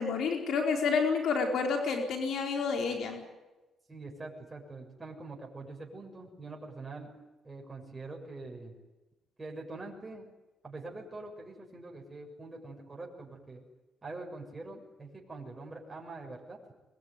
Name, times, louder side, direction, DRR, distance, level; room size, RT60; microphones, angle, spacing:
voice 1, 0.0-3.2, left 5 dB, 70° left, 3 dB, 4.5 m, -29 dB
voice 2, 3.9-7.1 7.4-8.7 9.4-10.3 10.6-13.6 14.0-16.6, right 3 dB, 20° right, -1 dB, 6.7 m, -44 dB
23.5 x 22.0 x 9.8 m, 1.1 s
cardioid pair, 90°, 0 cm